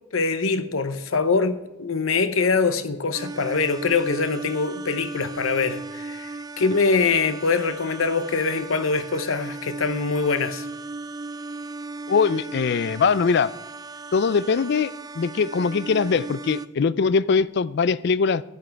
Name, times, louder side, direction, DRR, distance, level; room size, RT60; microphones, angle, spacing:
voice 1, 0.1-10.7, left 4 dB, 85° left, 0.8 m, -23 dB
sound 1, 3.1-16.7, right 3 dB, 20° right, 0.3 m, -36 dB
voice 2, 12.1-13.5 14.1-18.4, left 5 dB, 55° left, 0.4 m, -22 dB
11.0 x 9.1 x 4.6 m
head